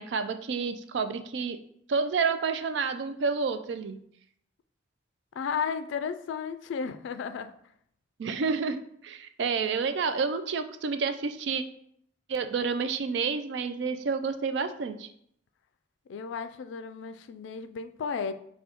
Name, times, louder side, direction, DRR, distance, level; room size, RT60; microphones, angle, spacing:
voice 1, 0.0-1.6 1.9-4.0 8.2-11.6 12.3-15.1, right 5 dB, 70° right, 9 dB, 0.3 m, -29 dB
voice 2, 5.4-7.5 16.1-18.3, left 6 dB, 85° left, 10 dB, 0.3 m, -33 dB
5.4 x 2.2 x 2.9 m, 0.67 s
head